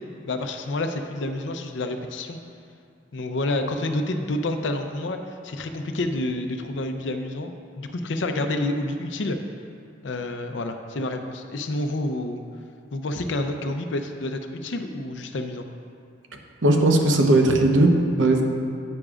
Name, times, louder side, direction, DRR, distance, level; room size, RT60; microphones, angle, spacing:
voice 1, 0.2-2.4 3.1-5.2 5.4-7.5 7.8-9.4 10.0-12.4 12.9-15.6, left 2 dB, 75° left, 6 dB, 0.6 m, -28 dB
voice 2, 16.6-18.4, right 2 dB, 90° right, 3 dB, 0.8 m, -18 dB
9.9 x 8.6 x 2.4 m, 2.5 s
head